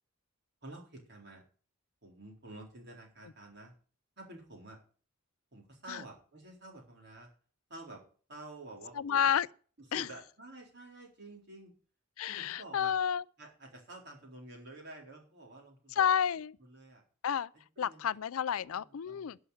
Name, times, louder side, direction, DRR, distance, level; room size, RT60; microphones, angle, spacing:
voice 1, 0.6-1.4 2.0-3.7 4.2-4.8 5.5-7.3 7.7-8.0 8.3-9.3 9.9-11.7 12.3-12.9 13.4-16.0 16.6-17.0 17.8-18.0 18.7-19.3, right 2 dB, 50° right, 3.9 m, -50 dB
voice 2, 8.9-9.5 9.9-10.1 12.2-13.2 15.9-16.6 17.2-17.5 17.8-19.4, left 8 dB, 75° left, 0.4 m, -30 dB
11.5 x 5.7 x 8.7 m
head